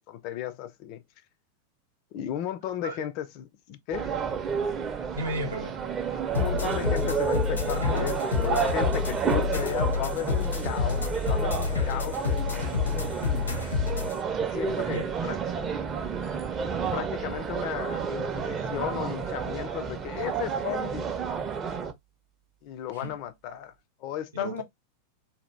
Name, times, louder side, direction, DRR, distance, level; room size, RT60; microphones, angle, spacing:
voice 1, 0.1-1.0 2.1-4.2 6.1-12.9 14.4-15.4 16.9-21.2 22.6-23.7 24.0-24.6, left 11 dB, 45° left, 0.4 m, -35 dB
sound 1, 3.9-21.9, right 6 dB, 25° right, 0.5 m, -31 dB
voice 2, 5.2-5.8 12.6-13.0 14.9-15.3 22.9-23.2 24.3-24.6, right 1 dB, 70° right, 0.7 m, -35 dB
sound 2, 6.3-14.1, left 6 dB, 75° left, 0.7 m, -28 dB
2.8 x 2.3 x 3.2 m
figure-of-eight pair, 90°, 0 cm